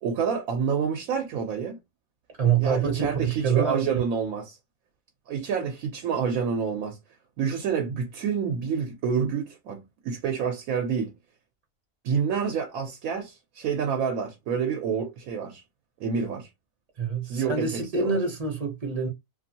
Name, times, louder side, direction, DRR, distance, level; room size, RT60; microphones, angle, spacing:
voice 1, 0.0-1.8 2.6-4.6 5.3-7.0 7.4-11.1 12.0-15.6 16.0-16.5 17.2-18.2, right 6 dB, 90° right, 1.1 m, -28 dB
voice 2, 2.4-4.0 17.0-19.1, right 6 dB, 40° right, 0.6 m, -25 dB
2.7 x 2.5 x 2.7 m
omnidirectional pair, 1.4 m